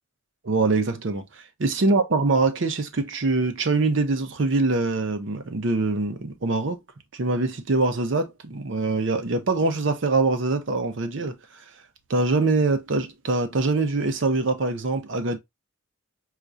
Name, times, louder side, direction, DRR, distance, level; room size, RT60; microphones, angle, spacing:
voice 1, 0.4-6.8 7.1-11.4 12.1-15.4, right 3 dB, 65° right, 0.6 m, -24 dB
4.4 x 2.4 x 2.5 m
head